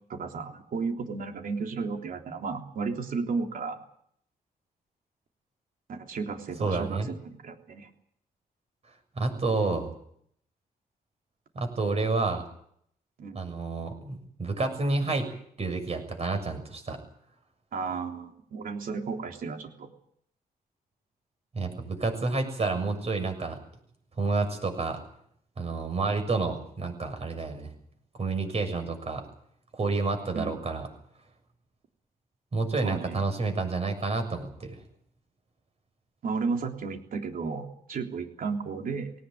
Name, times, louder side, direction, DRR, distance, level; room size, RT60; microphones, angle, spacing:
voice 1, 0.1-3.8 5.9-7.9 13.2-13.4 17.7-19.9 30.3-30.6 32.8-33.2 36.2-39.1, right 4 dB, 65° right, 3 dB, 3.5 m, -33 dB
voice 2, 6.6-7.1 9.2-9.9 11.6-12.5 13.3-15.3 15.6-17.0 21.5-23.6 24.2-25.0 25.6-27.7 28.2-29.2 29.7-30.9 32.5-34.8, right 3 dB, 45° right, 6 dB, 7.0 m, -29 dB
19.5 x 18.5 x 9.4 m, 0.68 s
cardioid pair, 100°, 15 cm